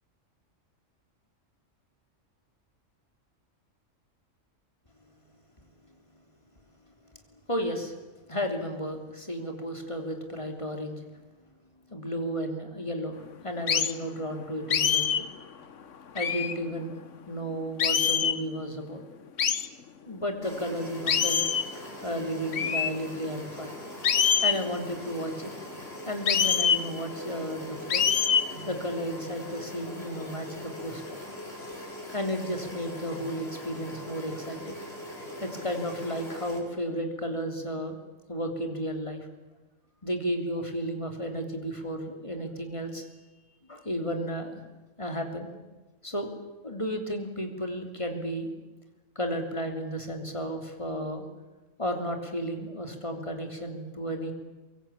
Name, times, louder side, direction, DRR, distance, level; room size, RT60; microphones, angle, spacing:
voice 1, 7.5-7.9 8.3-11.0 11.9-15.3 16.1-16.9 17.3-19.0 20.1-21.4 22.0-23.7 24.4-25.5 26.1-28.1 28.6-31.0 32.1-34.8 35.4-38.0 38.3-39.3 40.0-43.1 43.7-44.6 45.0-45.5 46.0-46.3 46.6-48.5 49.1-51.3 51.8-54.3, equal, 25° left, 4 dB, 3.3 m, -33 dB
sound 1, 13.7-13.9 14.7-15.3 16.2-16.6 17.8-18.4 19.4-19.7 21.1-21.7 22.5-22.9 24.0-24.6 26.3-26.8 27.9-28.5, left 8 dB, 70° left, 1.4 m, -24 dB
sound 2, 20.4-36.6, left 1 dB, 50° left, 5.7 m, -41 dB
23.5 x 23.0 x 8.8 m, 1.1 s
omnidirectional pair, 1.3 m